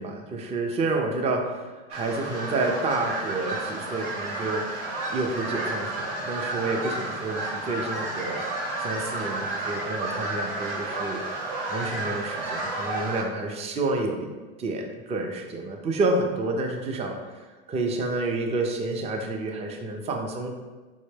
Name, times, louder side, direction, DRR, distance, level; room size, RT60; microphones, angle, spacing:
voice 1, 0.0-8.4 8.8-11.4 11.7-14.3 14.6-20.5, right 2 dB, 20° right, 2 dB, 0.5 m, -29 dB
sound 1, 1.9-13.2, right 2 dB, 75° right, 1.2 m, -31 dB
4.4 x 2.1 x 3.2 m, 1.3 s
hypercardioid pair, 90°, 30 cm